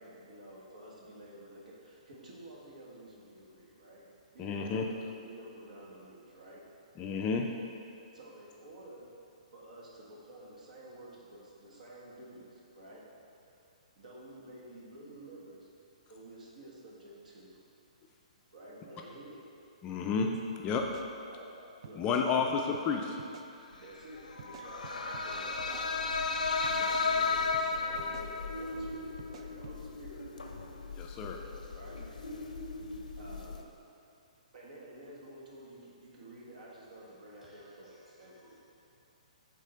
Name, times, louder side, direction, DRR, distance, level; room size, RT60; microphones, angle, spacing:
voice 1, 0.0-6.7 8.1-9.1 9.5-13.1 13.9-15.7 16.1-17.6 18.5-19.4 21.2-21.5 21.8-22.9 23.8-26.0 26.7-30.2 31.7-32.0 33.2-33.7 34.5-38.6, right 1 dB, 75° right, -4 dB, 1.5 m, -51 dB
voice 2, 4.4-4.8 7.0-7.5 19.8-20.3 20.6-20.8 22.0-23.0 31.0-31.4, left 5 dB, 25° left, 2 dB, 0.3 m, -30 dB
sound 1, 20.3-20.5 20.8-21.5 21.8-22.3 22.7-22.9 23.2-23.5 24.4-25.3 25.6-26.3 26.6-27.1 27.5-27.7 28.0-28.3 29.2-29.8, right 6 dB, 50° right, 0.4 m, -51 dB
sound 2, 24.1-33.6, left 4 dB, 90° left, 0.6 m, -35 dB
voice 3, 36.9-37.6 38.2-38.6, left 1 dB, 10° right, -8 dB, 1.2 m, -62 dB
4.9 x 3.6 x 5.5 m, 2.6 s
hypercardioid pair, 145°, 4 cm